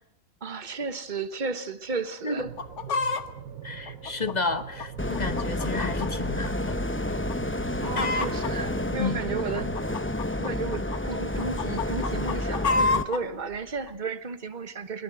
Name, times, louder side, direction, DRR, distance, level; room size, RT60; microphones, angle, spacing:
voice 1, 0.4-2.5 7.8-9.9 10.4-15.0, right 4 dB, 35° right, 1.4 m, -33 dB
Chicken rooster, 2.4-3.2 3.9-6.1 6.4-6.5 7.1-7.3 7.6-8.5 9.2-11.0 11.4-13.2 13.9-14.0, left 3 dB, 60° left, 1.5 m, -28 dB
sound 1, 2.4-10.0, right 9 dB, 90° right, 1.6 m, -42 dB
voice 2, 3.6-6.8 9.0-9.2, left 3 dB, 35° left, 1.1 m, -31 dB
sound 2, 5.0-13.0, left 1 dB, 10° left, 0.8 m, -30 dB
22.0 x 19.5 x 7.7 m
omnidirectional pair, 1.4 m